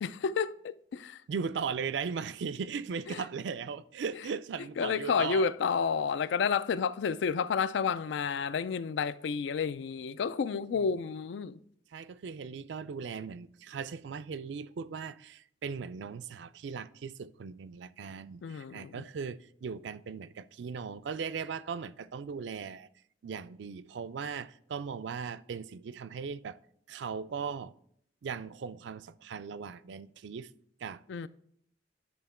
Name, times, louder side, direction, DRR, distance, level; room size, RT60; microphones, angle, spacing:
voice 1, 0.0-1.2 3.1-3.2 4.8-11.6 18.4-19.0 31.1-31.3, left 6 dB, 80° left, 0.3 m, -30 dB
voice 2, 1.3-5.5 10.7-10.9 11.9-22.9 23.2-26.6 26.9-27.7 28.2-30.5 30.8-31.0, right 6 dB, 75° right, 0.4 m, -38 dB
10.5 x 3.6 x 4.3 m
head